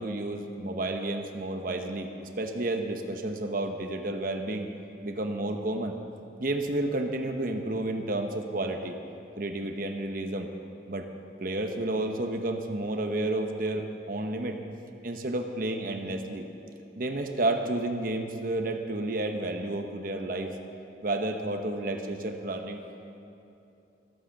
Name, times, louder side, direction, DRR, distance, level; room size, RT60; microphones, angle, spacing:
voice 1, 0.0-2.1 2.4-4.7 5.0-6.0 6.4-8.9 9.4-10.5 10.9-11.1 11.4-14.6 15.0-16.4 17.0-20.5 21.0-22.8, right 2 dB, 50° right, 4 dB, 1.0 m, -31 dB
12.5 x 11.5 x 7.2 m, 2.7 s
head